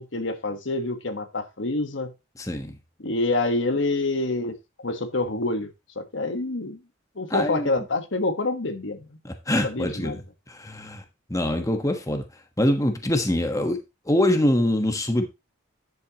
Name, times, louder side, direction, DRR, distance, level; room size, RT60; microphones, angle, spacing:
voice 1, 0.0-2.1 3.0-4.5 4.8-5.7 5.9-6.8 7.2-9.1 9.6-10.2, left 2 dB, 65° left, 1.4 m, -27 dB
voice 2, 2.4-2.8 7.3-7.8 9.2-11.0 11.3-12.2 12.6-15.3, left 1 dB, 15° left, 1.3 m, -24 dB
11.0 x 7.9 x 3.0 m
head